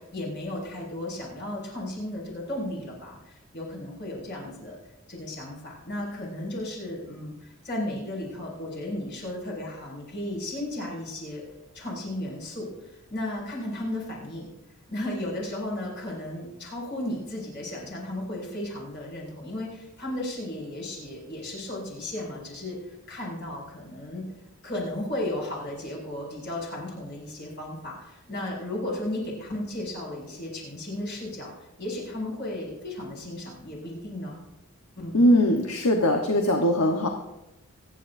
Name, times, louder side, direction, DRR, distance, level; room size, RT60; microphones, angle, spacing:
voice 1, 0.0-4.8 5.1-11.4 11.7-14.5 14.9-24.2 24.6-34.4 35.0-35.2, left 1 dB, 50° left, -4 dB, 5.9 m, -34 dB
voice 2, 35.1-37.1, equal, 85° left, 3 dB, 1.2 m, -21 dB
26.5 x 9.3 x 2.7 m, 0.93 s
head